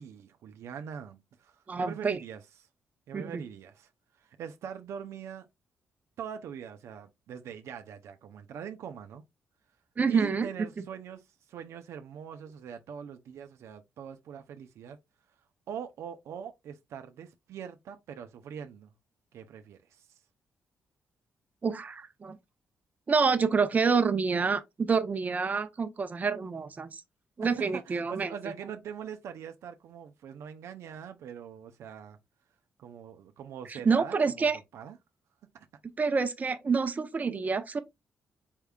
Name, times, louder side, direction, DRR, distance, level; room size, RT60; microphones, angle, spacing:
voice 1, 0.0-2.4 3.1-3.9 4.2-5.5 6.2-9.2 10.1-15.0 15.7-18.9 19.3-20.1 27.4-32.2 32.8-35.0 35.5-35.7, right 8 dB, 75° right, 0.5 m, -43 dB
voice 2, 1.7-2.2 3.1-3.4 10.0-10.5 21.6-22.4 23.1-27.0 27.4-28.3 33.7-34.6 36.0-37.8, right 5 dB, 35° right, 0.6 m, -27 dB
4.5 x 3.5 x 2.3 m
cardioid pair, 85°, 5 cm